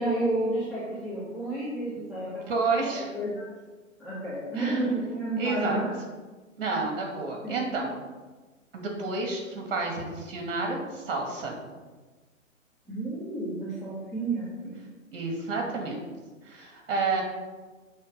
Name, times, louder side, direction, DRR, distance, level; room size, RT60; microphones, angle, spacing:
voice 1, 0.0-2.5 2.8-3.4 4.0-6.0 7.4-7.6 12.9-14.8, right 2 dB, ahead, -13 dB, 2.0 m, -31 dB
voice 2, 2.5-3.1 4.6-4.8 5.4-5.8 6.6-7.9 8.7-11.6 15.1-16.0 16.4-17.2, right 3 dB, 45° right, 0 dB, 2.4 m, -30 dB
8.2 x 3.9 x 5.4 m, 1.3 s
figure-of-eight pair, 120°, 41 cm